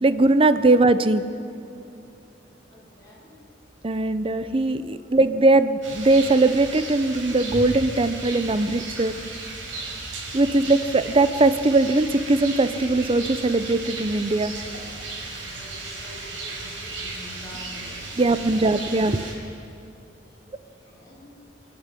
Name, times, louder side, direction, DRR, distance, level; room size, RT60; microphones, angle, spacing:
voice 1, 0.0-1.2 3.8-9.1 10.3-14.5 18.2-19.3, right 2 dB, 30° right, 12 dB, 0.6 m, -20 dB
voice 2, 2.7-3.3 4.9-5.0 8.6-8.7 15.3-18.6 20.3-21.3, left 1 dB, 20° left, -6 dB, 6.6 m, -47 dB
Rain, 5.8-19.3, right 3 dB, 90° right, 5.6 m, -35 dB
27.5 x 10.5 x 9.1 m, 2.7 s
head